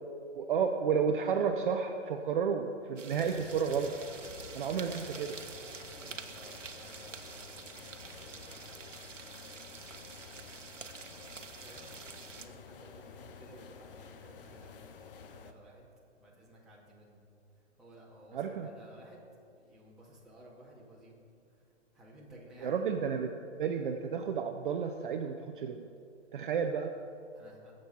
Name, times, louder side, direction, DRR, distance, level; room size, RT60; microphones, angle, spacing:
voice 1, 0.3-3.9 4.5-5.3 18.3-18.7 22.6-23.3 23.6-25.9 26.3-26.9, right 6 dB, 45° right, 5 dB, 0.8 m, -31 dB
sound 1, 3.0-12.5, right 6 dB, 90° right, 1.1 m, -48 dB
sound 2, 3.1-15.5, left 6 dB, 45° left, 0.9 m, -51 dB
voice 2, 4.6-8.8 11.6-15.9 16.2-17.2 17.8-21.2 21.9-22.7 27.3-27.7, right 1 dB, ahead, -7 dB, 2.2 m, -56 dB
20.5 x 7.7 x 4.3 m, 2.5 s
hypercardioid pair, 145°, 36 cm